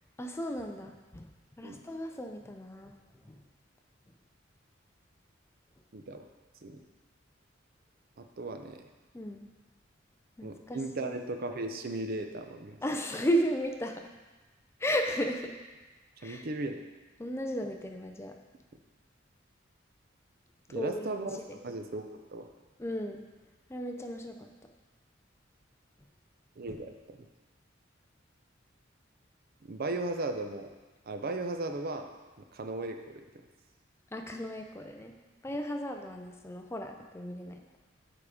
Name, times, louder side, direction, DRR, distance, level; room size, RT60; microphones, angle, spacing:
voice 1, 0.2-1.3 1.6-2.9 3.2-3.4 9.1-9.5 10.4-11.2 12.8-14.1 14.8-15.6 16.2-16.5 17.2-18.3 20.7-21.1 22.8-23.2 23.7-24.5 34.1-35.1 35.4-37.6, equal, 15° left, 4 dB, 0.4 m, -34 dB
voice 2, 5.9-6.2 6.6-6.8 8.2-8.9 10.4-12.8 16.2-16.8 20.7-22.5 26.6-27.2 29.7-30.7 31.1-32.1 32.5-33.2, right 2 dB, 50° right, 6 dB, 0.5 m, -36 dB
7.2 x 4.9 x 4.8 m, 1.2 s
head